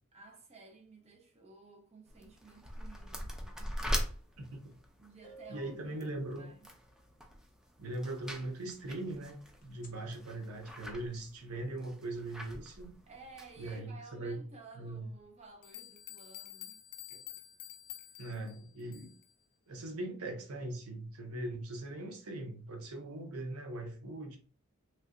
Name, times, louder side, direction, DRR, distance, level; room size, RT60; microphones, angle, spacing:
voice 1, 0.1-4.1 5.0-6.7 13.1-16.8 18.1-18.2, right 4 dB, 30° right, 0.7 m, -55 dB
sound 1, 2.1-13.8, equal, 5° right, 0.4 m, -43 dB
voice 2, 4.4-4.7 5.5-6.5 7.8-12.9 13.6-14.4 14.7-15.1 17.1-17.2 18.2-19.1 19.7-24.4, right 2 dB, 80° right, 0.7 m, -40 dB
sound 2, 4.7-4.8 5.2-7.0 9.6-9.9, right 1 dB, 35° left, 0.7 m, -55 dB
sound 3, 15.2-15.3 15.6-19.3, left 12 dB, 80° left, 0.4 m, -49 dB
3.2 x 2.7 x 2.5 m
head